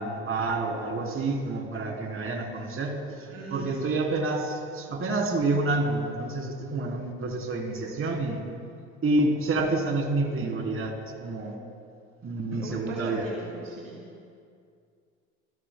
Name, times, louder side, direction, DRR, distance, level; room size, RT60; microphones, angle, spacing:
voice 1, 0.0-8.4 9.0-11.5 12.2-13.3, right 2 dB, 35° right, 0 dB, 3.5 m, -28 dB
voice 2, 3.3-3.8 12.6-14.0, right 2 dB, 90° right, -2 dB, 2.1 m, -39 dB
26.0 x 16.0 x 2.3 m, 2.3 s
hypercardioid pair, 60°, 37 cm